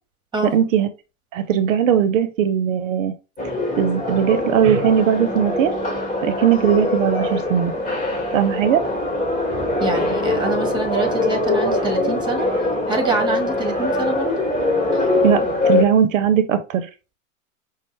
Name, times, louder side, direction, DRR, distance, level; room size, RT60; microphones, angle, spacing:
voice 1, 0.4-0.9 1.3-3.1 3.8-5.8 6.2-7.7 8.3-8.8 15.2-15.4 15.7-16.9, right 9 dB, 65° right, 11 dB, 0.6 m, -18 dB
sound 1, 3.4-15.8, left 2 dB, 20° left, 2.0 m, -22 dB
voice 2, 9.8-12.5 12.9-14.5 14.9-15.0 15.4-15.5, right 2 dB, 10° right, 4 dB, 1.1 m, -26 dB
5.1 x 2.0 x 3.2 m, 0.31 s
hypercardioid pair, 100°, 42 cm